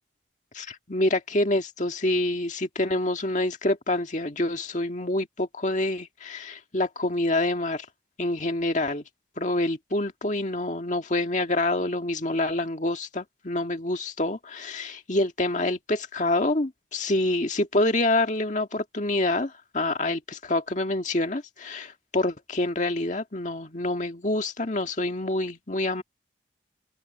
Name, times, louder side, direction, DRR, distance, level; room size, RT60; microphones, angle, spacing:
voice 1, 0.5-7.9 8.2-9.0 9.4-26.0, left 2 dB, 40° left, 1.9 m, -27 dB
open air
head